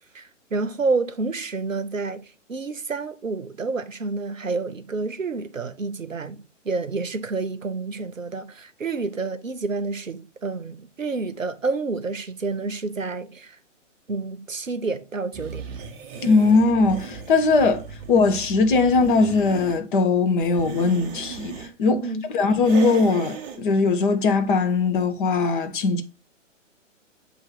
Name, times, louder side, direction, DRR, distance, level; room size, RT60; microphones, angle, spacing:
voice 1, 0.1-13.6 14.1-15.6 22.0-22.2, right 3 dB, 90° right, 0.8 m, -29 dB
sound 1, 15.3-19.8 20.4-21.7 22.6-23.6, right 6 dB, 15° right, 0.6 m, -37 dB
voice 2, 16.2-26.0, left 3 dB, 40° left, 1.0 m, -20 dB
7.8 x 2.8 x 4.3 m
figure-of-eight pair, 125°, 38 cm